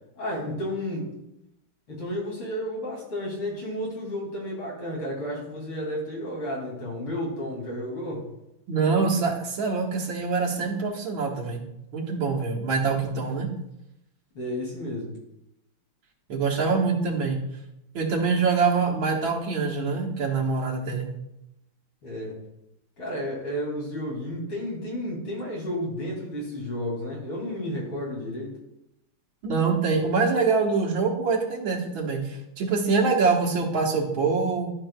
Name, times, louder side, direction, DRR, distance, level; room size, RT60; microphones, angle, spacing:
voice 1, 0.2-1.1 1.9-8.2 14.3-15.1 22.0-22.4 23.0-28.5, left 1 dB, 80° left, -4 dB, 3.3 m, -32 dB
voice 2, 8.7-11.6 11.9-13.5 16.3-17.4 17.9-21.1 29.4-34.7, right 4 dB, 65° right, -2 dB, 2.0 m, -24 dB
12.5 x 5.9 x 2.2 m, 0.85 s
omnidirectional pair, 2.4 m